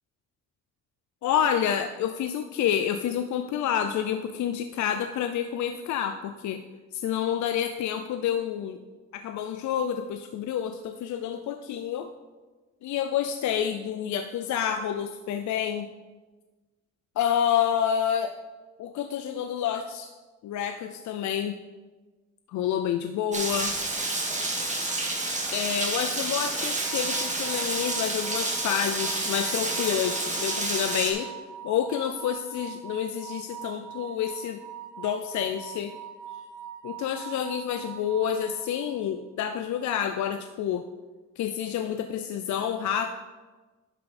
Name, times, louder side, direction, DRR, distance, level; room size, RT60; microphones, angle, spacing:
voice 1, 1.2-6.6 6.9-8.8 9.1-12.1 12.8-15.9 17.2-18.3 18.8-20.1 20.4-21.6 22.5-23.7 25.5-31.3 31.6-34.6 35.0-35.9 36.8-40.9 41.4-43.1, left 9 dB, 70° left, 8 dB, 0.5 m, -28 dB
Rain, 23.3-31.1, right 2 dB, 25° right, 1.9 m, -29 dB
sound 1, 26.8-39.0, right 8 dB, 90° right, 0.9 m, -43 dB
11.0 x 5.5 x 4.2 m, 1.3 s
cardioid pair, 90°, 30 cm